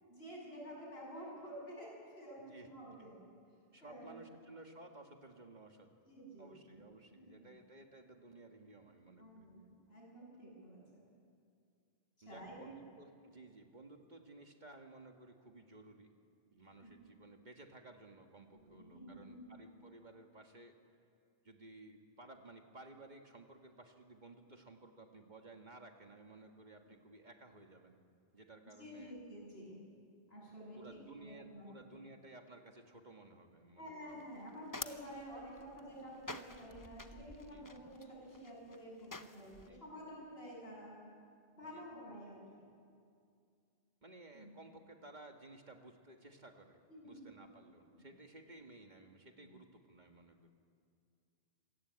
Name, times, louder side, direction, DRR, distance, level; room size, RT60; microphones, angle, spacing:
voice 1, 0.1-3.1 3.8-4.2 6.0-6.8 7.1-7.5 9.2-11.0 12.2-12.7 16.6-17.0 18.5-19.4 28.6-29.8 30.3-31.7 33.8-40.9 41.6-42.7 44.3-44.5 46.9-47.3 48.0-48.1 49.4-49.5, equal, 75° left, -3 dB, 8.2 m, -51 dB
voice 2, 2.4-2.9 3.7-5.9 6.4-9.5 12.2-16.1 16.5-20.8 21.4-28.0 28.3-29.1 30.8-33.9 37.5-37.7 39.7-39.9 41.6-41.9 44.0-50.5, right 2 dB, 45° right, 4 dB, 1.8 m, -56 dB
sound 1, 34.1-39.7, left 2 dB, 20° left, 0.8 m, -50 dB
26.5 x 17.5 x 8.7 m, 2.3 s
omnidirectional pair, 1.0 m